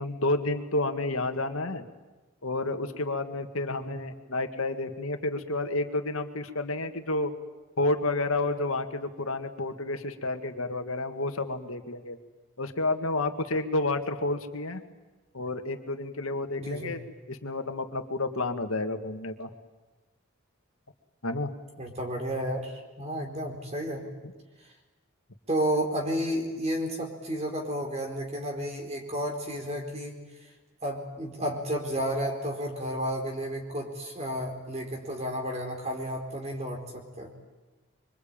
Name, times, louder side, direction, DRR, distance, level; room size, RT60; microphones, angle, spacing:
voice 1, 0.0-1.8 2.4-7.3 7.8-12.2 12.6-14.8 15.3-17.0 17.3-19.5 21.2-21.5, left 2 dB, 75° left, 7 dB, 2.1 m, -30 dB
voice 2, 3.7-4.0 16.6-16.9 21.8-24.0 25.5-30.2 30.8-37.3, equal, 30° right, 1 dB, 4.3 m, -32 dB
26.0 x 24.5 x 9.0 m, 1.2 s
head